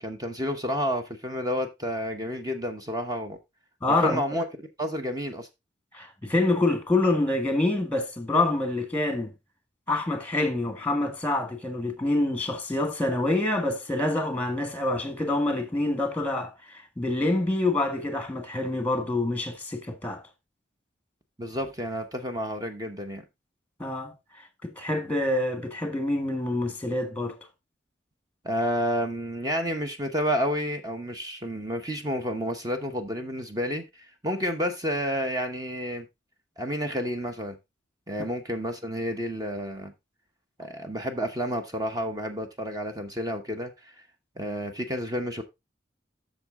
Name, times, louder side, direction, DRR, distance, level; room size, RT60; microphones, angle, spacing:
voice 1, 0.0-3.4 4.0-4.5 4.8-5.5 21.4-23.2 28.4-36.1 36.6-37.6 38.1-39.9 40.6-43.9 44.4-45.4, equal, 20° right, 1.0 m, -30 dB
voice 2, 3.8-4.2 5.9-9.3 9.9-20.2 23.8-27.4, left 2 dB, 10° left, 1.6 m, -26 dB
7.9 x 6.5 x 3.6 m
head